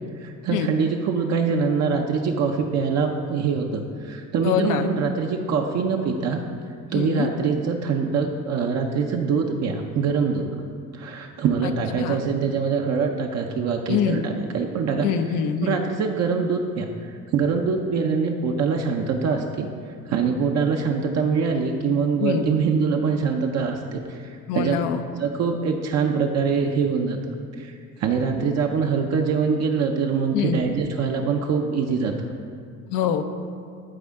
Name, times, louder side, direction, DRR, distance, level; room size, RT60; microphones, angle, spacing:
voice 1, 0.2-6.4 6.9-10.5 10.9-15.1 15.6-19.7 20.1-24.8 25.2-27.2 27.6-32.3, right 5 dB, 55° right, 3 dB, 0.6 m, -24 dB
voice 2, 4.4-4.9 6.9-7.3 11.6-12.2 13.9-14.3 15.0-15.8 22.2-22.4 24.5-25.0 30.3-30.6 32.9-33.2, left 8 dB, 85° left, 8 dB, 0.7 m, -24 dB
12.5 x 4.3 x 3.6 m, 2.2 s
cardioid pair, 115°, 31 cm